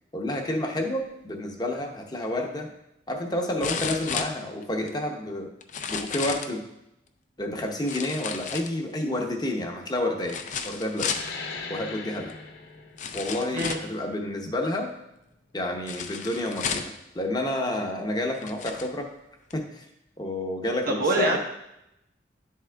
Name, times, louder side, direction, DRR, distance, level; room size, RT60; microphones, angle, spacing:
voice 1, 0.1-2.7 3.1-5.5 5.9-6.6 7.4-10.4 10.6-11.1 11.7-12.3 13.1-14.9 15.5-19.1 19.5-19.8 20.2-21.4, left 1 dB, 25° left, 2 dB, 0.8 m, -29 dB
sound 1, 2.2-2.3 3.6-4.9 5.6-6.6 7.8-9.0 10.2-11.3 12.3-12.4 13.0-13.9 15.9-17.0 17.8-17.9 18.3-18.9 19.5-19.6, left 6 dB, 45° left, 0.4 m, -33 dB
sound 2, 11.0-16.1, left 4 dB, 60° left, 0.8 m, -41 dB
voice 2, 20.9-21.4, right 2 dB, 55° right, 0 dB, 0.9 m, -24 dB
10.5 x 3.7 x 3.4 m, 0.84 s
head